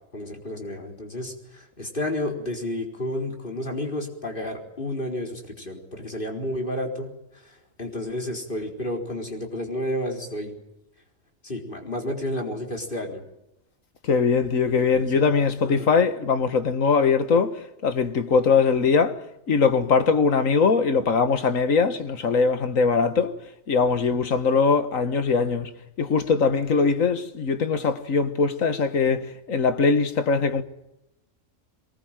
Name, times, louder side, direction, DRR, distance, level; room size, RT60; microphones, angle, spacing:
voice 1, 0.1-10.6 11.4-13.2 14.9-15.2 15.6-15.9, left 1 dB, 40° left, 4.5 m, -31 dB
voice 2, 14.0-19.2 19.5-23.3 23.7-25.7 26.0-30.6, left 5 dB, 80° left, 1.9 m, -21 dB
23.0 x 20.0 x 9.1 m
omnidirectional pair, 1.4 m